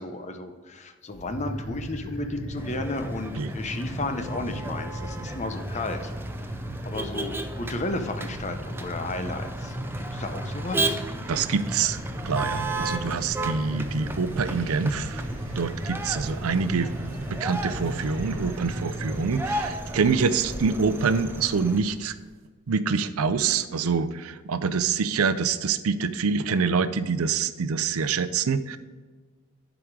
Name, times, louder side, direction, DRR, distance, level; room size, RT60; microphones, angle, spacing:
voice 1, 0.0-6.1 6.8-9.8 10.1-10.9, left 2 dB, 35° left, 7 dB, 0.7 m, -33 dB
sound 1, 1.1-19.4, right 1 dB, 85° left, 2.0 m, -36 dB
Motor vehicle (road), 2.6-21.8, right 2 dB, 10° right, 0.5 m, -35 dB
voice 2, 11.3-12.0 12.2-15.2 15.6-16.9 17.3-22.1 22.7-28.8, right 5 dB, 90° right, 13 dB, 0.5 m, -26 dB
sound 2, 11.5-22.4, right 1 dB, 65° right, 1.0 m, -43 dB
11.0 x 5.0 x 4.7 m, 1.4 s
head